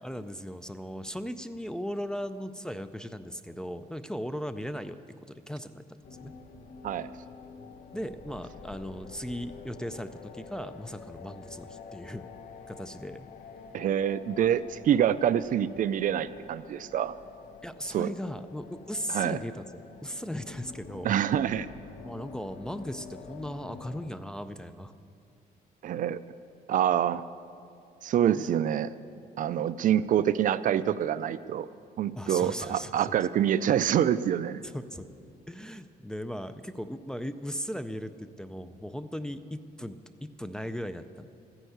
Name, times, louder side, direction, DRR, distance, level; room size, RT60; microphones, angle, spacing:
voice 1, 0.0-5.0 5.3-5.8 6.2-6.3 7.9-12.3 12.7-13.3 17.6-19.6 20.0-21.1 22.0-24.9 32.2-33.1 34.6-35.1 35.5-41.3, equal, 5° left, 9 dB, 0.4 m, -37 dB
sound 1, 6.0-24.1, left 5 dB, 55° left, 1.0 m, -48 dB
voice 2, 13.7-17.2 17.9-18.1 19.1-19.4 21.0-21.7 25.8-26.2 26.7-27.2 28.0-28.9 29.4-31.7 32.0-34.6, right 10 dB, 55° right, 15 dB, 0.4 m, -26 dB
14.0 x 10.0 x 7.9 m, 2.6 s
cardioid pair, 155°, 16 cm